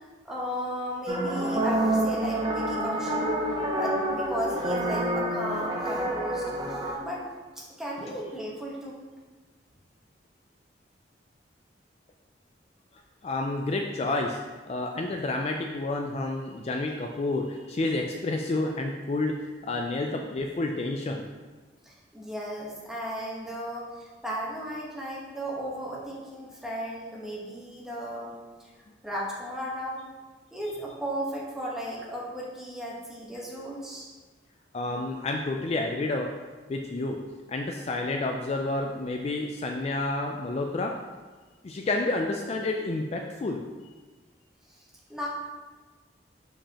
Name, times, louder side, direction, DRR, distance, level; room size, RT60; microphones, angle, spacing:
voice 1, 0.2-3.3 3.7-7.2 7.6-9.0 21.9-28.3 28.6-28.7 29.0-30.0 30.5-34.1 44.7-45.3, equal, 5° right, -5 dB, 1.1 m, -35 dB
sound 1, 1.1-7.0, right 1 dB, 25° right, 0.7 m, -28 dB
voice 2, 13.2-14.4 14.7-19.3 19.7-21.2 34.7-36.3 36.7-37.2 37.5-40.9 41.6-43.6, left 2 dB, 35° left, 2 dB, 0.3 m, -29 dB
6.7 x 5.0 x 2.9 m, 1.3 s
head